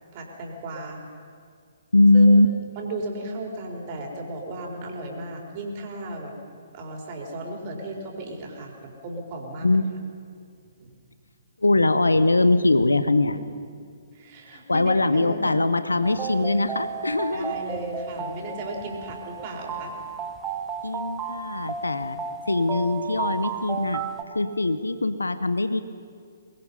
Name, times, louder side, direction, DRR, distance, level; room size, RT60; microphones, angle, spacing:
voice 1, 0.1-1.0 2.1-2.4 2.8-6.3 6.7-9.8 10.8-10.9 13.4-13.6 14.1-15.6 17.3-20.0, right 2 dB, 40° right, 0 dB, 4.5 m, -35 dB
voice 2, 1.9-2.5 9.6-9.9 11.6-13.4 14.7-17.5 20.8-22.2 22.5-24.0 24.3-25.8, left 2 dB, 90° left, 12 dB, 0.9 m, -21 dB
sound 1, 16.0-24.2, right 5 dB, 15° right, 1.4 m, -34 dB
23.5 x 20.5 x 5.6 m, 2.1 s
figure-of-eight pair, 130°, 0 cm